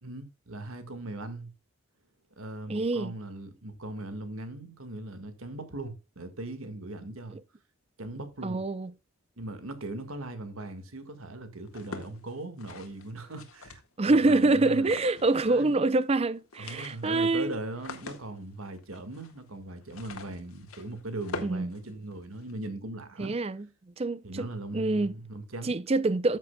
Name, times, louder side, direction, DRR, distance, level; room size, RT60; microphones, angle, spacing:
voice 1, 0.0-1.5 2.4-7.4 8.0-8.6 9.4-14.9 15.5-15.7 16.6-23.3 24.2-25.8, right 2 dB, 80° right, 1.9 m, -39 dB
voice 2, 2.7-3.1 7.3-7.4 8.4-8.9 14.0-17.6 21.4-21.7 23.2-23.7 24.0-25.1 25.6-26.4, right 2 dB, 30° right, 0.5 m, -26 dB
sound 1, 11.7-14.2 14.8-15.7 16.0-16.1 16.4-22.5, left 3 dB, 90° left, 1.7 m, -45 dB
13.5 x 7.4 x 2.3 m
head